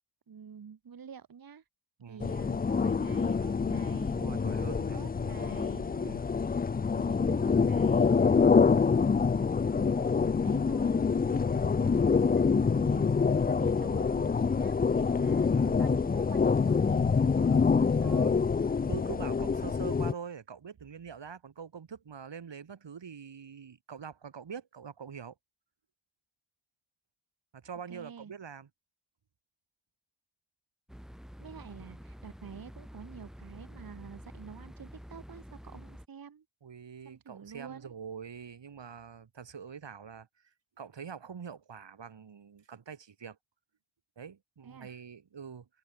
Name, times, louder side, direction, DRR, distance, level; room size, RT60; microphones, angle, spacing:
voice 1, 0.3-1.6 2.1-4.2 4.5-5.9 7.0-8.2 10.4-18.3 27.9-28.3 31.4-36.4 37.0-37.9 44.6-44.9, right 7 dB, 50° right, 1.6 m, -48 dB
sound 1, 2.2-20.1, left 5 dB, 25° left, 0.3 m, -26 dB
voice 2, 4.1-5.0 5.9-6.2 8.1-8.5 15.5-15.8 18.0-18.3 18.9-25.3 27.5-28.7 36.6-40.3 40.8-43.4 44.2-45.7, right 7 dB, 65° right, 5.1 m, -44 dB
sound 2, 30.9-36.1, equal, ahead, 5.8 m, -48 dB
wide cardioid pair, 175°, 46 cm